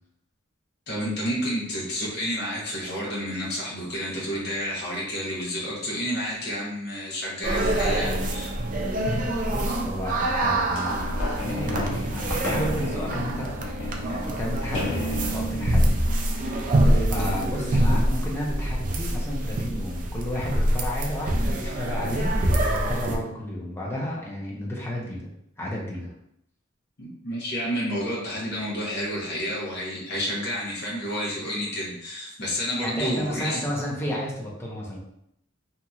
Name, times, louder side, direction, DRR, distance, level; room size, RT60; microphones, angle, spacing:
voice 1, 0.9-8.6 27.0-33.6, equal, 55° left, -5 dB, 1.0 m, -30 dB
sound 1, 7.4-23.2, right 1 dB, 40° right, 0.4 m, -25 dB
voice 2, 9.5-13.5 13.9-25.3 25.6-26.1 32.8-35.0, equal, 10° left, -4 dB, 0.6 m, -32 dB
sound 2, 10.7-17.5 18.1-18.2, left 1 dB, 70° left, 0.6 m, -33 dB
2.8 x 2.6 x 2.3 m, 0.74 s
head